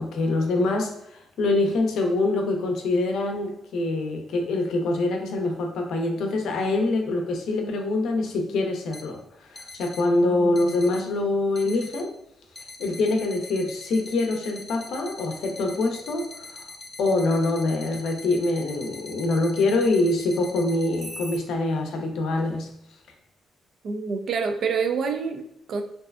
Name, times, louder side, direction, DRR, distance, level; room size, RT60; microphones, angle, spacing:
voice 1, 0.0-12.1 12.8-16.7 17.0-22.7, left 2 dB, 75° left, 3 dB, 0.5 m, -25 dB
sound 1, 8.9-9.0 9.6-10.0 10.6-11.0 11.6-12.0 12.6-21.4, left 2 dB, 20° left, 0.4 m, -42 dB
voice 2, 10.2-10.5 23.8-25.8, right 5 dB, 60° right, 6 dB, 0.3 m, -27 dB
2.6 x 2.2 x 2.3 m, 0.77 s
cardioid pair, 90°, 0 cm